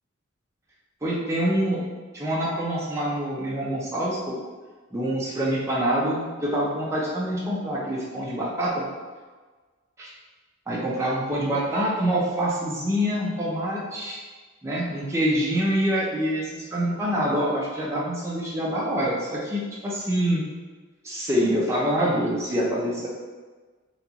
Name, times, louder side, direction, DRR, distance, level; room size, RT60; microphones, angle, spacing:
voice 1, 1.0-1.8 2.1-4.3 4.9-8.9 10.0-10.1 10.7-14.2 14.6-20.4 21.0-23.1, equal, 15° right, -6 dB, 0.4 m, -25 dB
2.9 x 2.3 x 3.8 m, 1.4 s
head